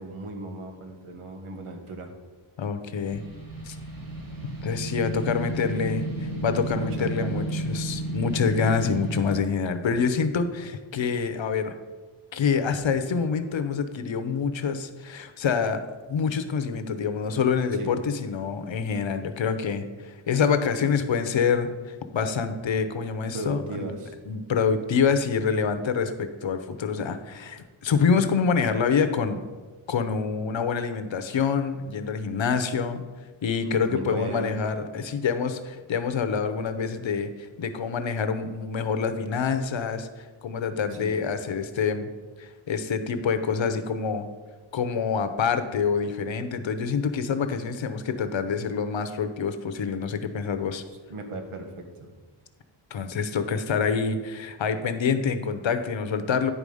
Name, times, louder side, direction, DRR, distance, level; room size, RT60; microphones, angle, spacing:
voice 1, 0.0-2.1 6.7-7.5 17.7-17.9 23.3-24.2 33.6-34.5 40.9-41.2 51.1-52.1, right 2 dB, 85° right, 4 dB, 1.3 m, -36 dB
voice 2, 2.6-3.2 3.7-3.8 4.6-11.7 12.3-15.8 16.1-21.7 22.1-23.9 24.3-29.4 29.9-33.0 33.4-42.1 42.4-44.3 44.7-50.8 52.9-56.5, left 6 dB, 65° left, 9 dB, 0.8 m, -26 dB
sound 1, 3.0-9.4, right 2 dB, 45° right, 1.4 m, -32 dB
9.7 x 4.9 x 5.4 m, 1.4 s
wide cardioid pair, 145°, 49 cm